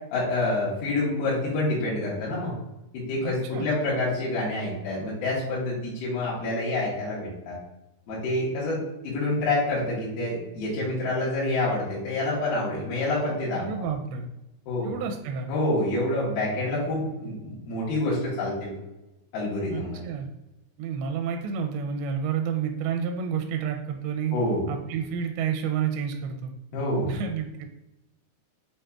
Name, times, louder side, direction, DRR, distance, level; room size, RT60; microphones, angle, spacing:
voice 1, 0.1-2.5 2.9-7.6 8.1-13.6 14.7-14.9 15.5-18.7 19.3-20.1 24.3-24.6 26.7-27.1, left 2 dB, 70° left, -8 dB, 2.8 m, -27 dB
voice 2, 3.2-3.7 13.6-14.3 14.8-15.5 19.7-20.3 20.8-24.4 24.7-26.5 27.1-27.7, right 7 dB, 85° right, 3 dB, 2.2 m, -30 dB
7.0 x 2.6 x 2.3 m, 0.96 s
omnidirectional pair, 4.6 m